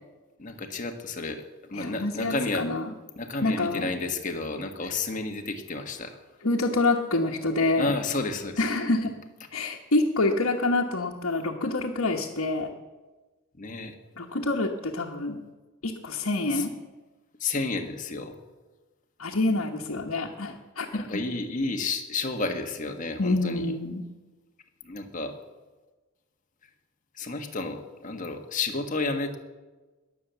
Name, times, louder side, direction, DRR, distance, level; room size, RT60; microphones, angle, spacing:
voice 1, 0.4-2.7 3.1-6.2 7.8-8.6 13.6-13.9 16.5-16.6 17.4-18.3 20.5-20.6 20.9-23.7 24.8-25.3 27.1-29.4, left 3 dB, 35° left, 4 dB, 1.5 m, -31 dB
voice 2, 1.7-2.9 3.4-3.9 4.8-4.9 6.4-7.9 8.6-9.1 9.5-12.7 14.2-15.4 15.8-16.7 19.2-21.2 23.2-24.0, left 2 dB, 80° left, -1 dB, 1.3 m, -27 dB
20.5 x 7.8 x 7.0 m, 1.2 s
head